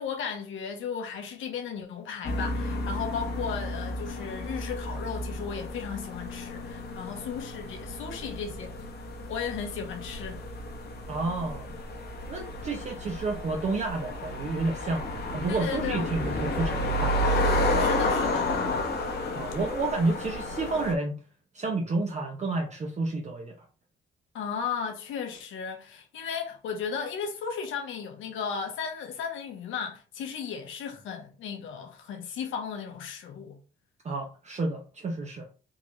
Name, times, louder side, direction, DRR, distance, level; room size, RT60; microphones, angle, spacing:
voice 1, 0.0-8.7 9.3-10.4 15.5-16.1 17.7-18.5 24.3-33.6, left 6 dB, 80° left, 1.1 m, -35 dB
sound 1, 2.2-20.9, left 1 dB, 55° left, 1.1 m, -31 dB
voice 2, 11.1-11.8 12.3-17.3 19.3-21.2 21.5-23.7 34.0-35.5, right 3 dB, 35° right, 0.7 m, -30 dB
3.8 x 2.5 x 3.0 m
cardioid pair, 90°, 20 cm